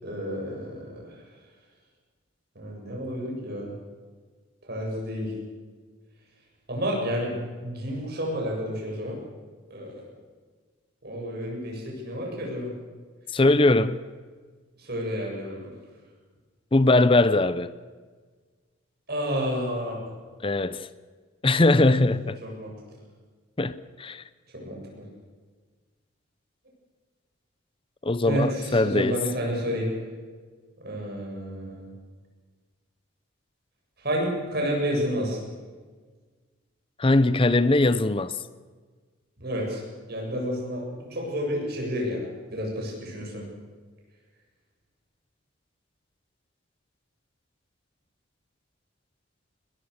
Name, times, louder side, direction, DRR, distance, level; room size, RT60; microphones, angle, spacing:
voice 1, 0.0-1.1 2.6-3.7 4.6-5.3 6.7-9.2 9.7-10.1 11.0-12.7 14.8-15.7 19.1-20.0 22.4-22.7 24.6-24.8 28.2-29.9 30.8-31.9 34.0-35.4 39.4-39.8 40.1-43.4, equal, 50° right, 7.6 m, -30 dB
voice 2, 13.3-14.0 16.7-17.7 20.4-20.9 21.4-22.4 23.6-24.2 28.0-29.2 37.0-38.4, left 2 dB, 25° left, 0.6 m, -21 dB
22.0 x 21.0 x 6.6 m
head